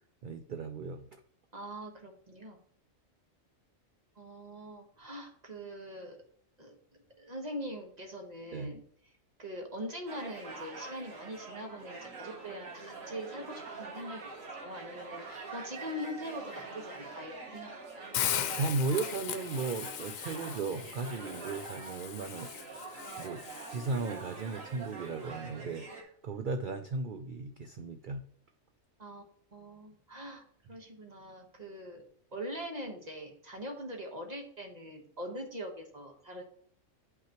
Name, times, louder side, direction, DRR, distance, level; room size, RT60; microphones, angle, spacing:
voice 1, 0.2-1.1 8.5-8.8 18.4-22.8 23.2-23.4 23.7-28.2, right 3 dB, 60° right, 7 dB, 0.5 m, -36 dB
voice 2, 1.5-2.6 4.2-6.2 6.6-6.8 7.2-8.8 9.4-18.0 29.0-29.2 29.5-32.0 32.3-36.5, equal, 30° right, 2 dB, 1.3 m, -42 dB
sound 1, 10.1-26.0, right 3 dB, 80° right, 2.0 m, -45 dB
Hiss, 18.1-24.2, left 10 dB, 90° left, 1.0 m, -38 dB
9.4 x 5.7 x 2.9 m, 0.64 s
omnidirectional pair, 1.4 m